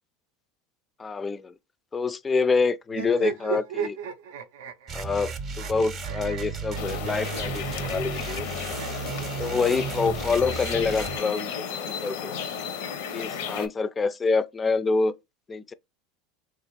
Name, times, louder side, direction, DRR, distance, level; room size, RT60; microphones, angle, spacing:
voice 1, 1.0-1.5 1.9-4.0 4.9-8.5 9.4-12.3 13.1-15.1 15.5-15.7, left 4 dB, 20° left, 0.3 m, -26 dB
sound 1, 2.9-9.1 10.0-11.2, right 8 dB, 80° right, 0.5 m, -37 dB
sound 2, 4.9-11.2, right 5 dB, 35° right, 0.6 m, -34 dB
sound 3, 6.8-13.7, left 6 dB, 80° left, 0.5 m, -34 dB
3.4 x 2.4 x 3.0 m
supercardioid pair, 110°, 0 cm